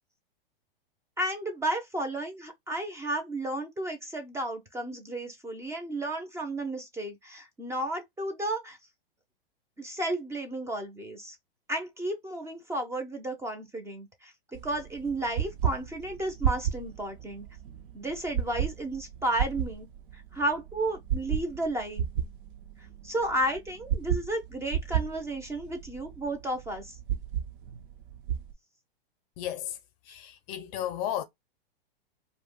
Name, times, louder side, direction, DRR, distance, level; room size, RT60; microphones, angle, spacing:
voice 1, 1.2-8.8 9.8-11.4 11.7-17.5 17.9-19.9 20.3-22.0 23.0-27.0, right 1 dB, 10° right, 0.5 m, -33 dB
sound 1, 14.5-28.5, right 9 dB, 60° right, 0.6 m, -33 dB
voice 2, 29.4-29.7 30.1-31.2, left 11 dB, 40° left, 0.5 m, -33 dB
2.3 x 2.2 x 3.6 m
hypercardioid pair, 120°, 29 cm